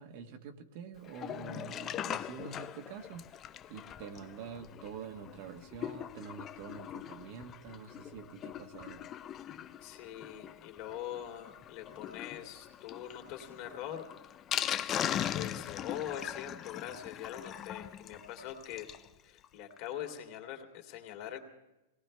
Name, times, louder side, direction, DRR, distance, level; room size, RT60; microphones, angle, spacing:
voice 1, 0.0-3.2 3.7-9.1, right 7 dB, 45° right, 6 dB, 1.3 m, -46 dB
Sink (filling or washing), 1.0-19.1 19.4-19.5 19.7-19.8 20.2-20.3, left 10 dB, 20° left, 0.5 m, -40 dB
voice 2, 9.8-14.1 15.1-18.9 19.2-21.4, left 10 dB, 40° left, 3 dB, 2.7 m, -43 dB
22.5 x 18.5 x 3.4 m, 0.99 s
supercardioid pair, 160°, 0 cm